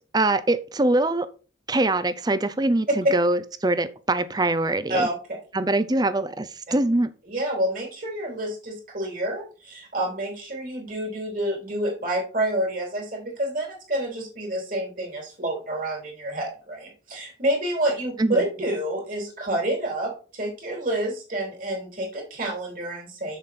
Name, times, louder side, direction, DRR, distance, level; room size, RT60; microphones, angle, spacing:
voice 1, 0.1-1.3 1.7-5.1 5.5-7.1 18.2-18.4, right 2 dB, 20° right, 0.6 m, -23 dB
voice 2, 4.9-5.4 7.3-23.4, right 1 dB, 45° right, 3.5 m, -28 dB
7.1 x 7.1 x 4.3 m
head